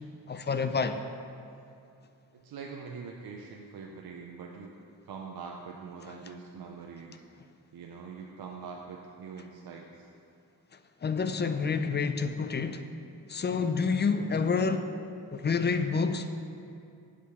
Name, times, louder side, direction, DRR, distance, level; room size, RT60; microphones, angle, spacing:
voice 1, 0.3-1.0 11.0-12.8 13.3-14.9 15.3-16.3, left 5 dB, 30° left, 9 dB, 0.4 m, -28 dB
voice 2, 2.3-4.7 5.0-7.2 7.7-10.1, right 5 dB, 70° right, 0 dB, 0.7 m, -43 dB
8.3 x 5.1 x 5.7 m, 2.5 s
wide cardioid pair, 100°, 38 cm